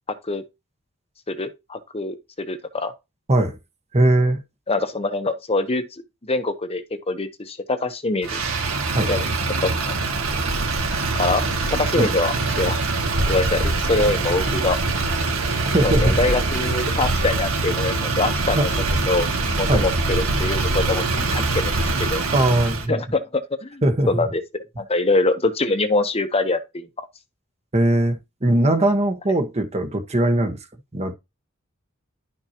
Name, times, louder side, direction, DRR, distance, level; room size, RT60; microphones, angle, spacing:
voice 1, 1.3-2.9 4.7-5.8 6.2-8.4 9.1-9.3 9.6-10.0 11.1-11.4 11.8-12.8 13.3-14.8 15.8-18.7 19.1-22.2 22.9-24.4 24.8-27.1, left 3 dB, 30° left, 1.0 m, -24 dB
voice 2, 3.9-4.4 8.9-9.1 12.0-12.1 15.6-16.2 18.6-18.7 19.7-19.9 22.3-23.0 23.8-24.3 27.7-30.6 30.9-31.1, right 1 dB, 30° right, 1.3 m, -20 dB
Motor vehicle (road), 8.2-22.9, right 3 dB, 70° right, 2.1 m, -23 dB
11.5 x 5.8 x 2.9 m
head